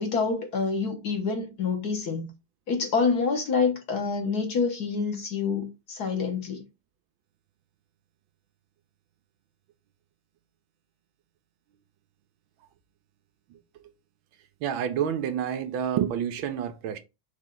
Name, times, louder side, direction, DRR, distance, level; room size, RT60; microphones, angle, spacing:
voice 1, 0.0-2.3 2.7-6.6, left 5 dB, 55° left, 1.5 m, -27 dB
voice 2, 14.6-17.0, right 9 dB, 80° right, 1.4 m, -28 dB
4.4 x 3.1 x 3.7 m
omnidirectional pair, 2.2 m